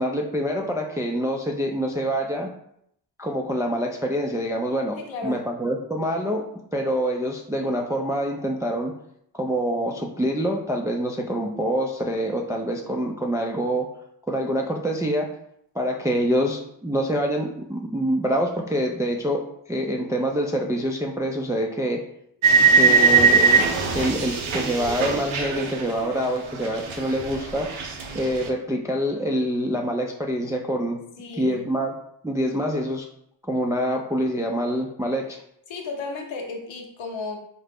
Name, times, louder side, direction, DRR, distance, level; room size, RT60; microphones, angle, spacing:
voice 1, 0.0-2.5 3.2-6.5 6.7-8.9 9.3-13.9 14.3-15.3 15.8-22.0 22.8-23.7 23.9-27.7 28.1-31.0 31.4-31.9 32.2-33.1 33.5-35.4, equal, 10° right, 1 dB, 0.3 m, -26 dB
voice 2, 5.0-5.4 31.2-31.7 35.7-37.4, left 4 dB, 85° left, 2 dB, 0.8 m, -34 dB
sound 1, 22.4-26.4 26.6-28.5, right 5 dB, 90° right, 0.6 m, -20 dB
3.7 x 2.1 x 3.4 m, 0.73 s
cardioid pair, 60°, 46 cm